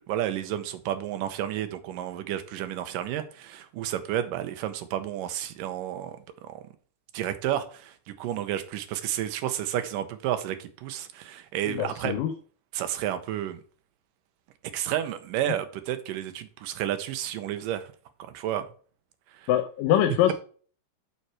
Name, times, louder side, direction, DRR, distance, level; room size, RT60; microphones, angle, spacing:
voice 1, 0.1-6.2 6.4-6.6 7.1-12.2 12.7-13.6 14.7-17.9 18.3-18.7 19.4-19.5, right 11 dB, 80° right, 2.5 m, -31 dB
voice 2, 11.7-12.3 19.5-20.3, left 11 dB, 80° left, 2.4 m, -24 dB
7.1 x 6.7 x 4.8 m
omnidirectional pair, 3.9 m